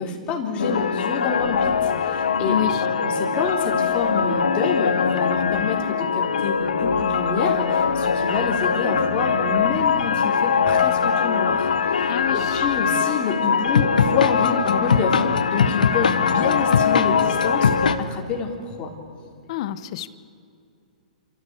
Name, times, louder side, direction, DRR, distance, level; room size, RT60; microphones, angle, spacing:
voice 1, 0.0-18.9, left 4 dB, 25° left, 1 dB, 3.7 m, -28 dB
sound 1, 0.6-18.0, left 6 dB, 85° left, 1.2 m, -21 dB
voice 2, 2.5-2.8 12.1-12.6 19.5-20.1, left 12 dB, 50° left, 14 dB, 1.0 m, -28 dB
29.0 x 14.5 x 8.3 m, 2.5 s
hypercardioid pair, 140°, 4 cm